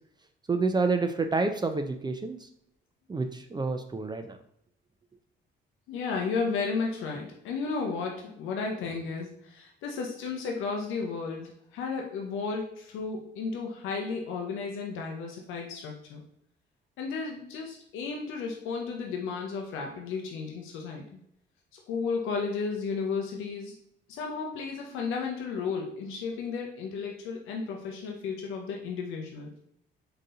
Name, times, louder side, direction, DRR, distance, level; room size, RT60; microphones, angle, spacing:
voice 1, 0.5-2.5 3.1-4.4, right 3 dB, 20° right, 7 dB, 0.4 m, -28 dB
voice 2, 5.9-16.2 17.0-21.2 21.7-23.7 24.1-29.5, left 4 dB, 90° left, 1 dB, 0.6 m, -33 dB
3.9 x 2.7 x 3.8 m, 0.74 s
cardioid pair, 90°, 20 cm